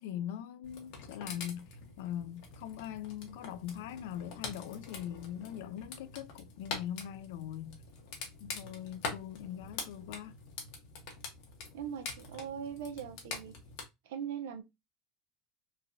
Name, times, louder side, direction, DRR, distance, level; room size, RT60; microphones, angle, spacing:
voice 1, 0.0-1.7 2.0-7.8 8.4-10.3, left 10 dB, 80° left, 0.3 m, -41 dB
sound 1, 0.6-13.8, left 4 dB, 65° left, 1.0 m, -45 dB
voice 2, 11.7-13.5 14.0-14.6, right 8 dB, 85° right, 0.6 m, -40 dB
3.2 x 2.3 x 2.4 m
supercardioid pair, 130°, 0 cm